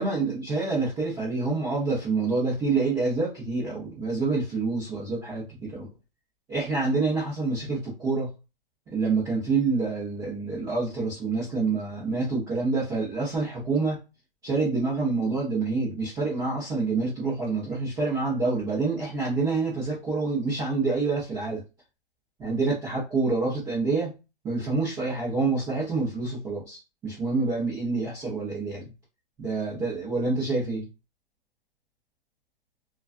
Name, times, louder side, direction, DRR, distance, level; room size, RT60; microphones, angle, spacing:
voice 1, 0.0-5.9 6.5-8.3 8.9-14.0 14.4-21.6 22.4-24.1 24.4-28.9 29.4-30.9, right 3 dB, 10° right, -8 dB, 0.7 m, -27 dB
2.3 x 2.3 x 2.4 m, 0.28 s
hypercardioid pair, 145°, 30 cm